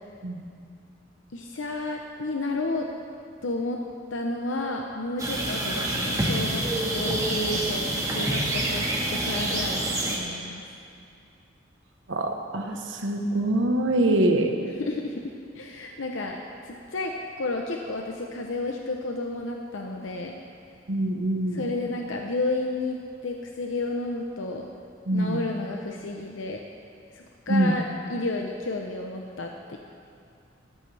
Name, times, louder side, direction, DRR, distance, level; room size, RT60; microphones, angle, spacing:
voice 1, 0.2-0.6 12.1-14.5 20.9-21.7 25.1-25.4 27.5-27.7, right 1 dB, 75° right, 3 dB, 1.1 m, -24 dB
voice 2, 1.3-2.9 3.4-3.8 4.1-6.6 6.9-7.8 8.1-8.8 9.1-10.6 14.7-16.4 16.7-20.3 21.5-23.0 23.2-24.6 25.1-26.6 27.1-27.8 28.1-29.8, left 2 dB, 85° left, 1 dB, 0.8 m, -31 dB
sound 1, 5.2-10.2, right 1 dB, 20° right, 1.7 m, -27 dB
16.5 x 13.5 x 3.4 m, 2.4 s
head